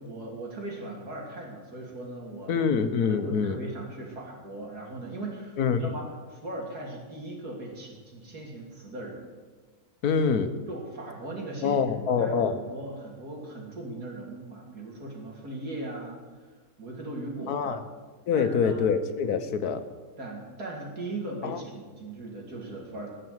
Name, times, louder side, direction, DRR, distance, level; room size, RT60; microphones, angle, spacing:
voice 1, 0.0-2.5 3.0-9.2 10.7-16.2 16.8-17.8 18.3-18.8 20.2-23.1, right 2 dB, 85° right, -1 dB, 3.7 m, -38 dB
voice 2, 2.5-3.6 5.6-5.9 10.0-10.5 11.6-12.6 17.5-17.8 18.3-19.8 21.4-21.6, left 6 dB, 75° left, 9 dB, 1.5 m, -25 dB
20.0 x 6.7 x 7.9 m, 1.4 s
omnidirectional pair, 1.6 m